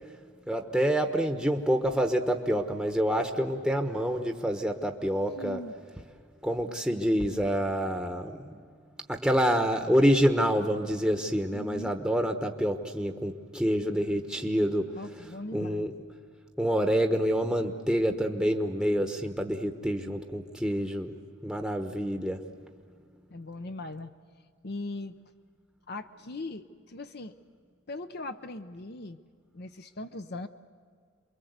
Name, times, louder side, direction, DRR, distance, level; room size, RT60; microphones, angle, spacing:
voice 1, 0.5-5.6 6.4-8.6 9.1-14.9 15.5-15.9 16.6-21.2 21.4-22.4, equal, 5° right, 4 dB, 1.0 m, -27 dB
voice 2, 5.4-5.7 11.5-12.0 14.9-15.9 23.3-24.1 24.6-25.1 25.9-27.4 27.9-29.2 29.5-30.5, left 2 dB, 55° left, 9 dB, 0.8 m, -39 dB
28.0 x 22.5 x 8.1 m, 2.1 s
head